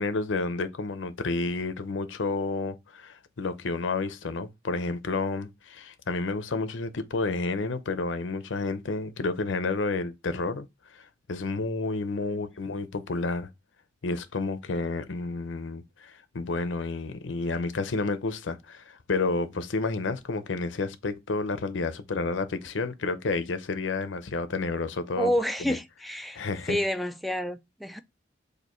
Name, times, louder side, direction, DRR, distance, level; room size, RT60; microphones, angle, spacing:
voice 1, 0.0-10.7 11.3-13.5 14.0-25.3 25.7-25.8 26.3-26.8, left 3 dB, 90° left, 0.6 m, -30 dB
voice 2, 25.1-26.4 26.7-28.0, equal, ahead, 0.3 m, -29 dB
6.6 x 2.7 x 3.0 m
head